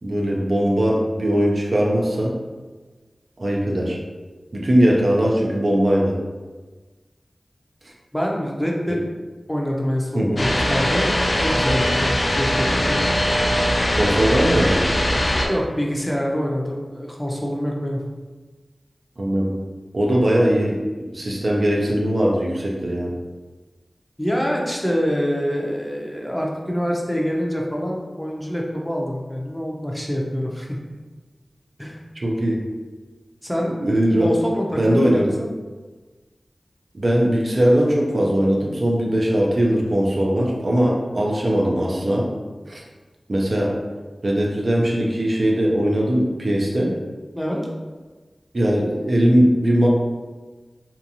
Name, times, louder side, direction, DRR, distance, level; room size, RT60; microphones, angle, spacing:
voice 1, 0.0-2.4 3.4-4.0 4.5-6.2 10.1-10.4 14.0-14.9 19.2-19.6 19.9-20.8 21.1-23.1 32.2-32.6 33.6-34.3 34.8-35.3 36.9-42.3 42.7-42.8 43.3-43.8 44.2-46.9 48.5-49.9, equal, 60° right, -2 dB, 0.5 m, -20 dB
voice 2, 8.1-9.0 9.5-11.1 11.4-13.0 15.5-18.0 24.2-30.7 31.8-32.0 33.4-33.8 34.2-35.5 47.3-47.6, equal, 5° left, -2 dB, 0.5 m, -25 dB
sound 1, 10.4-15.5, equal, 55° left, 0.5 m, -21 dB
2.8 x 2.3 x 2.6 m, 1.3 s
wide cardioid pair, 45°, 0 cm